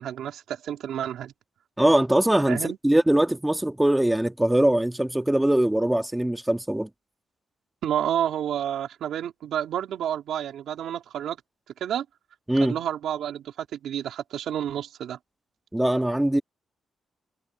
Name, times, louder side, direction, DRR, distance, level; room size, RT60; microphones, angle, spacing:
voice 1, 0.0-1.3 2.5-2.8 7.8-11.4 11.8-12.0 12.6-15.2, right 10 dB, 85° right, 3.4 m, -30 dB
voice 2, 1.8-6.9 12.5-12.8 15.7-16.4, right 1 dB, 10° right, 1.7 m, -22 dB
cardioid pair, 115°, 0 cm